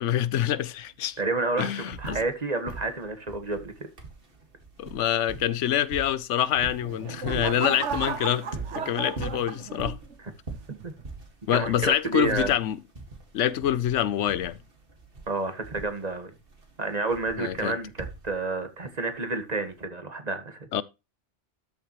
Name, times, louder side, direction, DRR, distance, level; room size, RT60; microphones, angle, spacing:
voice 1, 0.0-1.2 1.6-2.2 4.8-8.5 8.7-10.0 11.5-12.8 13.3-14.6 17.4-17.8 20.7-20.8, left 11 dB, 80° left, 1.0 m, -26 dB
sound 1, 0.6-0.7 0.9-2.4 2.6-18.6 19.7-19.8, right 3 dB, 50° right, 2.3 m, -41 dB
voice 2, 1.2-3.7 10.8-10.9 11.5-12.5 15.3-16.3 16.8-20.7, right 3 dB, 35° right, 1.7 m, -30 dB
sound 2, 6.6-10.1 10.7-11.0, right 6 dB, 80° right, 1.4 m, -34 dB
12.5 x 6.9 x 3.1 m
omnidirectional pair, 1.2 m